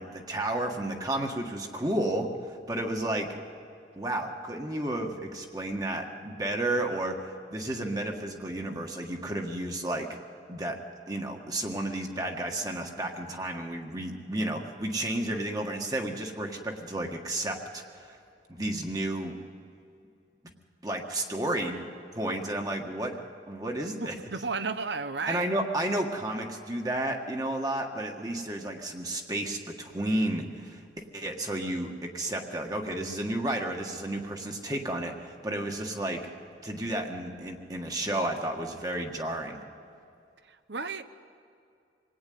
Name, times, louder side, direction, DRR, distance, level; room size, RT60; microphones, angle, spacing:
voice 1, 0.0-3.3 4.0-10.1 10.5-10.8 11.1-18.2 18.5-19.3 20.8-21.8 22.1-23.2 23.5-24.1 25.3-36.3 36.6-39.6, right 1 dB, 20° right, 2 dB, 1.8 m, -32 dB
voice 2, 24.0-25.5 40.4-41.0, right 4 dB, 70° right, 11 dB, 1.1 m, -33 dB
26.5 x 19.5 x 9.5 m, 2.5 s
head